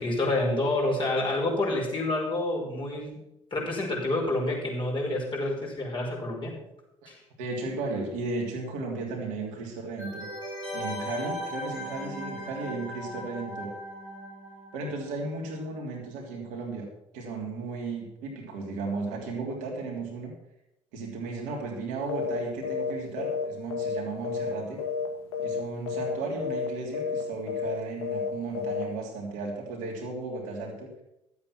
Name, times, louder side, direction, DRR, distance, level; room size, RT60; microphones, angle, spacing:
voice 1, 0.0-3.2 3.5-6.5 7.1-7.2, left 2 dB, 35° left, -2 dB, 5.4 m, -28 dB
voice 2, 7.4-10.3 10.7-13.7 14.7-16.9 17.1-20.3 20.9-24.8 25.4-30.9, right 3 dB, 65° right, -1 dB, 3.1 m, -35 dB
sound 1, 10.0-15.5 15.7-15.8, equal, 90° left, 4.2 m, -38 dB
sound 2, 22.1-22.4 22.6-22.9 23.2-24.5 24.8-25.1 25.3-25.6 25.9-26.1 26.4-26.7 26.9-27.2 27.5-27.7 28.0-28.3 28.5-28.8, left 6 dB, 70° left, 1.8 m, -30 dB
12.5 x 8.5 x 6.0 m, 0.85 s
figure-of-eight pair, 50°, 15 cm